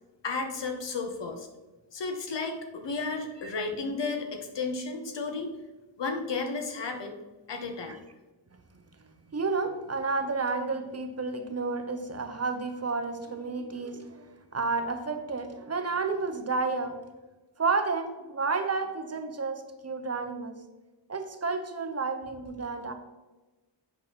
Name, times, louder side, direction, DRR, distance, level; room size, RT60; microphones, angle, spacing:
voice 1, 0.2-1.5 1.9-5.5 6.0-7.1 7.5-8.0, left 4 dB, 70° left, 4 dB, 1.2 m, -33 dB
voice 2, 9.3-17.0 17.6-20.6 21.1-22.9, right 4 dB, 35° right, 7 dB, 0.7 m, -31 dB
8.6 x 5.7 x 4.4 m, 1.1 s
wide cardioid pair, 180°, 45 cm